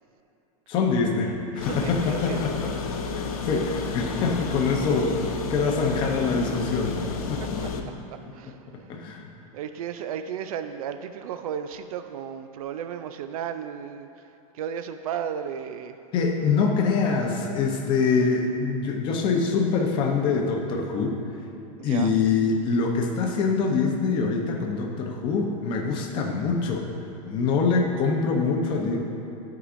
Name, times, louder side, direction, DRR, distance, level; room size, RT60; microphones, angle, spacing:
voice 1, 0.7-2.7 3.2-7.0 7.3-7.4 7.7-7.8 8.9-9.3 16.1-21.2 21.8-26.9 27.3-29.0, left 4 dB, 25° left, 1 dB, 0.7 m, -24 dB
sound 1, 1.6-7.8, left 5 dB, 90° left, 0.7 m, -31 dB
voice 2, 1.6-2.5 6.7-6.8 7.4-7.7 8.1-8.9 9.5-16.0 21.8-22.1, right 8 dB, 90° right, 9 dB, 0.4 m, -34 dB
11.0 x 4.9 x 2.5 m, 3.0 s
supercardioid pair, 165°, 18 cm